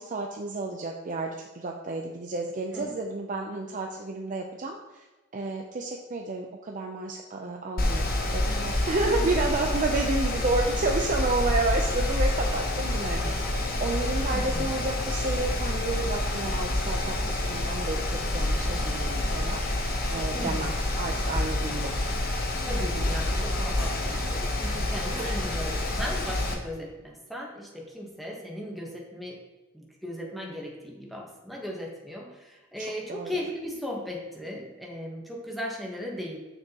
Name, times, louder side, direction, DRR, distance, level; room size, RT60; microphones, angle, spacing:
voice 1, 0.0-5.1 5.3-13.3 13.8-18.0 18.3-21.9 22.9-23.1 23.4-23.7 24.1-24.2 25.0-25.8 32.8-33.3, right 2 dB, 35° right, 1 dB, 0.5 m, -31 dB
Mechanical fan, 7.8-26.5, left 1 dB, 45° left, 0.9 m, -28 dB
voice 2, 14.3-14.7 20.3-20.8 22.6-29.4 29.7-36.4, equal, ahead, -2 dB, 1.1 m, -37 dB
6.7 x 6.5 x 2.9 m, 1.2 s
head